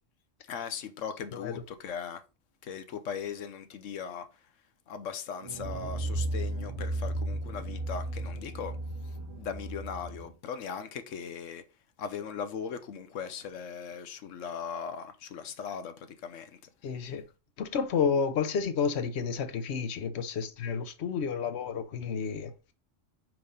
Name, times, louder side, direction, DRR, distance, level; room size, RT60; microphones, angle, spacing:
voice 1, 0.5-2.2 2.6-4.3 4.9-8.8 9.4-11.6 12.0-16.6, left 7 dB, 85° left, 1.1 m, -39 dB
sound 1, 5.4-10.3, right 1 dB, 85° right, 2.1 m, -35 dB
voice 2, 16.8-17.2 17.6-22.5, left 6 dB, 60° left, 1.1 m, -30 dB
5.0 x 4.7 x 5.5 m
omnidirectional pair, 1.3 m